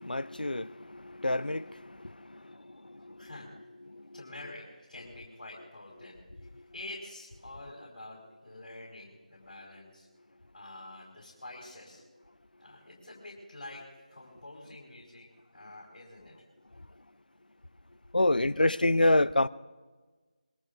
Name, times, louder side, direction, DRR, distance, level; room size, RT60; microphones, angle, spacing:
voice 1, 0.0-3.2 3.9-4.0 18.1-19.5, left 2 dB, 85° left, 0.4 m, -28 dB
voice 2, 3.2-3.7 4.1-10.1 10.5-12.0 12.6-16.4, left 2 dB, 60° left, 4.7 m, -47 dB
24.0 x 22.0 x 2.7 m
figure-of-eight pair, 160°, 5 cm